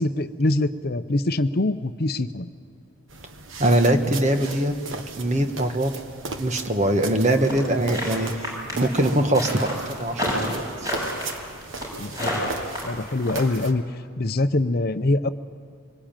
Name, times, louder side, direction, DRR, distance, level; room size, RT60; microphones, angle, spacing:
voice 1, 0.0-2.5 12.0-12.4 12.8-13.8 14.2-15.3, left 2 dB, 50° left, 10 dB, 0.7 m, -24 dB
sound 1, 3.1-13.7, right 3 dB, 65° right, 1.5 m, -37 dB
voice 2, 3.6-5.9 6.4-10.6, right 1 dB, 35° right, 6 dB, 1.4 m, -22 dB
sound 2, 7.4-13.4, equal, 15° right, 6.9 m, -29 dB
24.5 x 20.0 x 9.0 m, 2.3 s
head